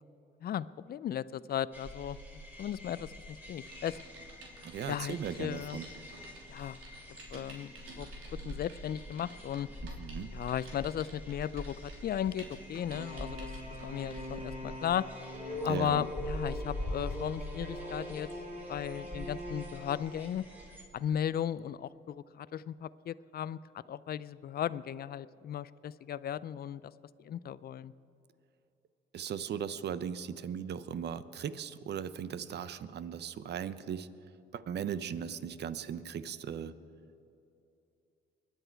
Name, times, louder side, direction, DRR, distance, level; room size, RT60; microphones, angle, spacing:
voice 1, 0.4-2.2 2.6-4.0 4.9-5.8 6.5-6.8 7.3-7.7 8.0-8.1 8.4-9.7 10.3-13.5 13.8-15.1 15.6-18.3 18.7-20.4 20.9-23.6 23.9-26.9 27.2-27.9, left 10 dB, 50° left, 18 dB, 0.4 m, -36 dB
sound 1, 1.7-20.8, left 1 dB, 10° right, 4.0 m, -44 dB
Typing, 3.6-14.4 14.9-15.1, right 3 dB, 85° right, 3.0 m, -53 dB
voice 2, 4.6-5.9 9.8-10.3 15.7-16.1 29.1-34.1 34.5-36.7, right 8 dB, 60° right, 15 dB, 0.7 m, -38 dB
sound 2, 12.9-20.6, equal, 40° right, 2.8 m, -44 dB
23.5 x 10.0 x 4.6 m, 2.8 s
cardioid pair, 90°, 20 cm